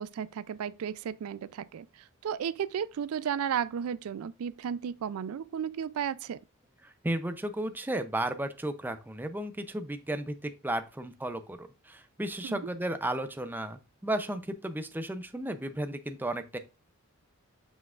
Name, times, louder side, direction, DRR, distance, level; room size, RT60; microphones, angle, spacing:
voice 1, 0.0-1.9 2.2-6.4 12.4-12.6, right 8 dB, 80° right, 0.3 m, -34 dB
voice 2, 6.8-16.6, right 1 dB, 10° right, 0.5 m, -34 dB
7.1 x 5.9 x 2.4 m
head